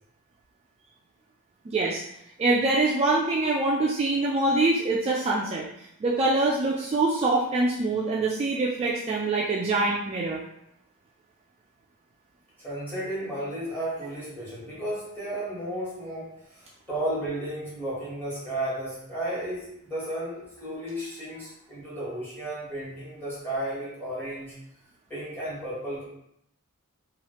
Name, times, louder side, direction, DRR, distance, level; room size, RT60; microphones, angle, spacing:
voice 1, 1.7-2.0 2.4-5.7 6.0-10.4, right 2 dB, 30° right, -4 dB, 0.3 m, -24 dB
voice 2, 12.6-24.5 25.1-26.0, right 1 dB, 10° left, -9 dB, 1.3 m, -33 dB
3.1 x 2.3 x 2.9 m, 0.77 s
head